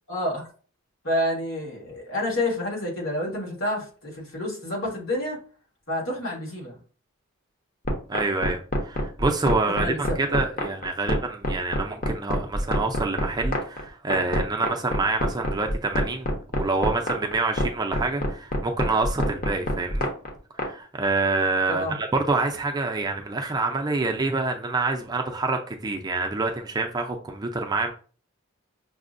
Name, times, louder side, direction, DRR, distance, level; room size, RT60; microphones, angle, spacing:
voice 1, 0.1-0.5 1.0-5.4 5.9-6.8 9.7-10.4 21.7-22.0, left 1 dB, 70° left, 1.5 m, -29 dB
sound 1, 7.8-20.7, left 1 dB, 40° left, 0.7 m, -25 dB
voice 2, 8.1-20.1 20.5-27.9, right 3 dB, 20° right, 0.3 m, -27 dB
5.8 x 2.1 x 2.5 m
head